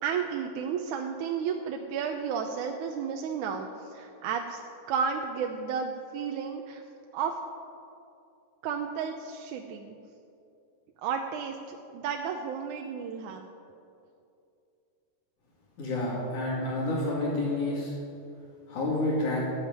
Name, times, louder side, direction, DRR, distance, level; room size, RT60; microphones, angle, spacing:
voice 1, 0.0-4.6 4.9-6.8 7.1-7.4 8.6-10.0 11.0-13.4, right 6 dB, 80° right, 3 dB, 2.2 m, -32 dB
voice 2, 15.8-17.9 18.7-19.4, left 2 dB, 85° left, -7 dB, 4.2 m, -29 dB
15.0 x 9.1 x 9.6 m, 2.6 s
omnidirectional pair, 3.4 m